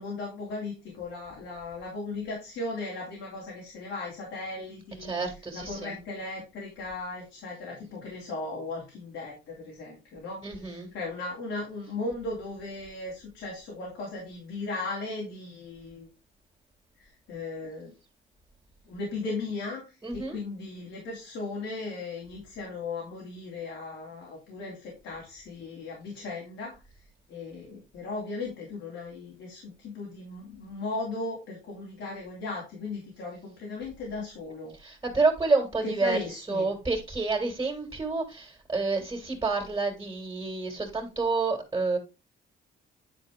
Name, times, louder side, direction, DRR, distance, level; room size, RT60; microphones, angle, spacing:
voice 1, 0.0-5.1 5.5-16.1 17.0-17.9 18.9-26.8 27.3-34.7 35.8-36.7, left 3 dB, 85° left, 3.1 m, -37 dB
voice 2, 5.0-5.9 10.4-10.9 20.0-20.4 34.8-42.0, right 3 dB, 15° right, 2.6 m, -29 dB
9.8 x 4.4 x 3.7 m
cardioid pair, 90°, 20 cm